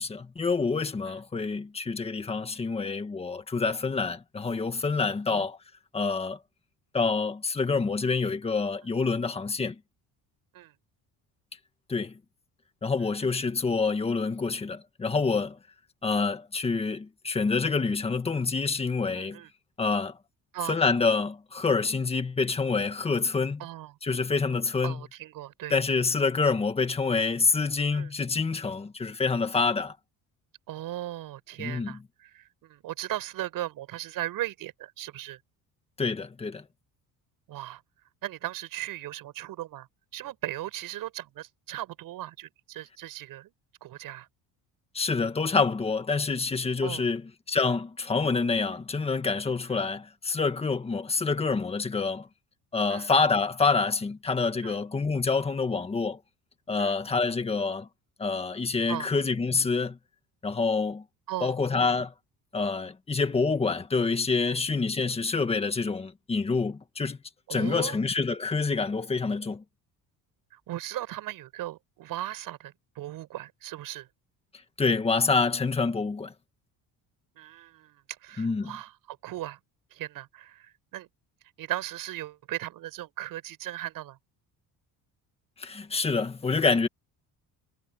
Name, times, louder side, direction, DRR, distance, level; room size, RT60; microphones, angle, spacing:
voice 1, 0.0-5.6 5.9-6.4 6.9-9.8 11.9-12.2 12.8-15.6 16.0-19.4 19.8-20.2 20.7-23.6 24.0-25.0 25.7-29.9 31.6-32.0 36.0-36.6 44.9-52.3 52.7-56.2 56.7-57.9 58.2-60.0 60.4-61.0 61.4-62.1 62.5-67.2 67.5-69.6 74.8-76.3 78.4-78.8 85.6-86.9, left 4 dB, 15° left, 1.7 m, -27 dB
voice 2, 19.2-19.5 20.5-20.8 23.6-23.9 24.8-25.8 27.9-28.1 30.7-35.4 37.5-37.8 38.2-39.9 40.1-43.5 43.8-44.3 46.8-47.1 49.7-49.8 52.9-53.1 54.6-54.8 56.8-57.0 58.9-59.1 61.3-61.6 64.5-64.6 67.5-68.0 70.5-74.1 77.4-79.6 79.9-81.1 81.6-84.2, right 14 dB, 60° right, 7.3 m, -37 dB
cardioid pair, 175°, 38 cm